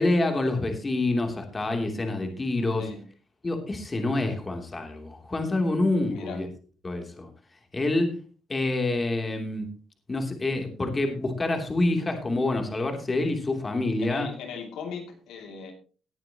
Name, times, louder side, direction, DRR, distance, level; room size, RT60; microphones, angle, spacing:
voice 1, 0.0-2.9 3.4-6.5 6.8-7.3 7.7-8.2 8.5-9.7 10.1-14.3, left 2 dB, 25° left, 4 dB, 3.0 m, -27 dB
voice 2, 6.1-6.4 14.0-15.7, left 5 dB, 85° left, 4 dB, 2.6 m, -38 dB
19.0 x 9.0 x 3.0 m, 0.37 s
cardioid pair, 90°, 0 cm